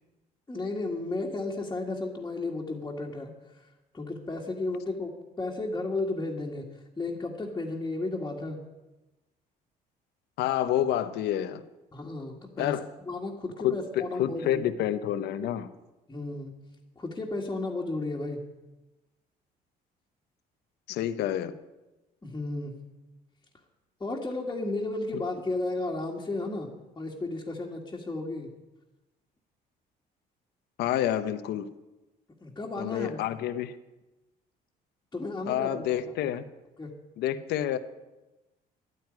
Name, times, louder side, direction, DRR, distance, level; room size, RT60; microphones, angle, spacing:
voice 1, 0.5-3.7 3.9-8.6 11.9-12.7 13.1-14.7 15.4-15.5 16.1-16.6 17.0-18.4 22.2-22.8 24.0-28.5 32.4-33.2 35.1-35.9 36.8-36.9, left 2 dB, 20° left, -3 dB, 2.0 m, -33 dB
voice 2, 10.4-11.6 12.6-12.8 13.6-15.7 20.9-21.6 30.8-31.7 32.8-33.8 35.5-36.4 37.2-37.8, left 11 dB, 80° left, 11 dB, 0.9 m, -28 dB
11.5 x 9.3 x 9.6 m, 1.1 s
cardioid pair, 110°, 17 cm